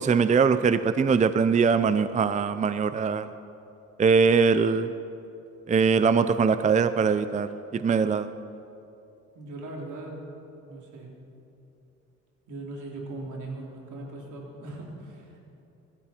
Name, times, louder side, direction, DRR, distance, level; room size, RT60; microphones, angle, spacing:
voice 1, 0.0-3.3 4.0-4.9 5.7-8.3, right 5 dB, 25° right, 12 dB, 0.5 m, -22 dB
voice 2, 9.3-10.2 10.7-11.1 12.5-15.5, right 2 dB, 80° right, -1 dB, 3.7 m, -39 dB
24.5 x 13.0 x 4.5 m, 2.8 s
cardioid pair, 90°, 30 cm